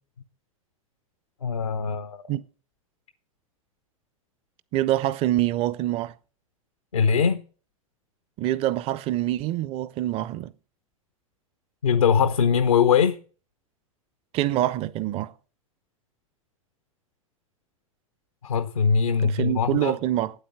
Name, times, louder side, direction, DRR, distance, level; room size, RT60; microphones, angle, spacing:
voice 1, 1.4-2.2 6.9-7.4 11.8-13.2 18.4-20.0, left 6 dB, 75° left, 0.9 m, -21 dB
voice 2, 4.7-6.1 8.4-10.5 14.3-15.3 19.2-20.3, right 14 dB, 35° right, 0.6 m, -25 dB
9.1 x 8.2 x 7.3 m
figure-of-eight pair, 90°, 18 cm